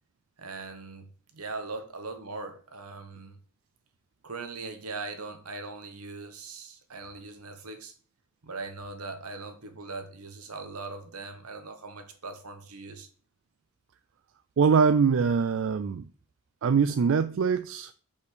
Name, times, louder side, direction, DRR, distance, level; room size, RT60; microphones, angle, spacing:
voice 1, 0.4-3.4 4.2-7.9 8.4-13.1, right 3 dB, 80° right, 1.3 m, -40 dB
voice 2, 14.6-16.0 16.6-17.9, right 6 dB, 60° right, 0.4 m, -23 dB
6.4 x 5.3 x 5.0 m
head